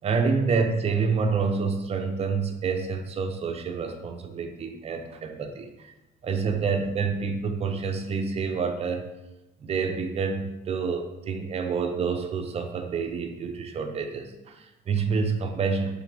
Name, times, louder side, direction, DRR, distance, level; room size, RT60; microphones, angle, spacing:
voice 1, 0.0-5.7 6.2-9.0 9.6-16.0, right 5 dB, 40° right, 6 dB, 0.5 m, -28 dB
3.6 x 3.3 x 3.2 m, 0.97 s
cardioid pair, 110°, 17 cm